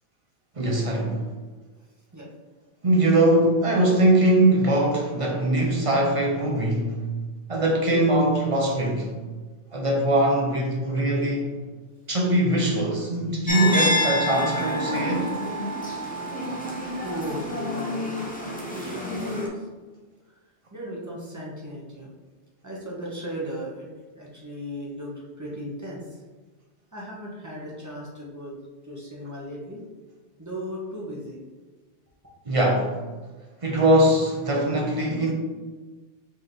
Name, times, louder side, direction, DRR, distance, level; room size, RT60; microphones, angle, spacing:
voice 1, 0.6-1.2 2.8-7.0 7.5-9.1 9.7-11.5 12.1-15.3 32.5-32.9 33.6-35.3, right 1 dB, 35° right, -1 dB, 0.7 m, -21 dB
sound 1, 13.5-19.5, left 1 dB, 10° left, 0.5 m, -28 dB
voice 2, 17.0-19.7 20.7-22.1 22.6-23.9 24.2-25.1 25.4-26.2 26.9-28.5 28.8-29.8 30.4-31.4, equal, 15° right, -4 dB, 0.9 m, -36 dB
4.1 x 3.3 x 3.9 m, 1.3 s
omnidirectional pair, 1.2 m